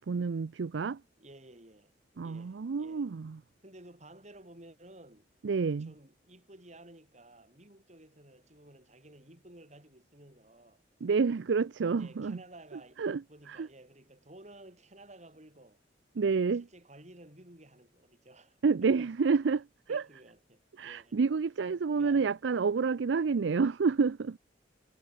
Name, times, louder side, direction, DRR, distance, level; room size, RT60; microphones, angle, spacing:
voice 1, 0.1-1.0 2.2-3.4 5.4-5.9 11.0-12.4 13.0-13.2 13.5-13.7 16.2-16.7 18.6-20.0 20.8-24.4, right 5 dB, 85° right, 0.5 m, -29 dB
voice 2, 1.2-1.9 2.2-3.1 3.6-5.3 5.8-10.8 11.9-15.8 16.5-19.1 19.9-21.2 21.9-22.4, right 1 dB, 40° right, 7.3 m, -54 dB
head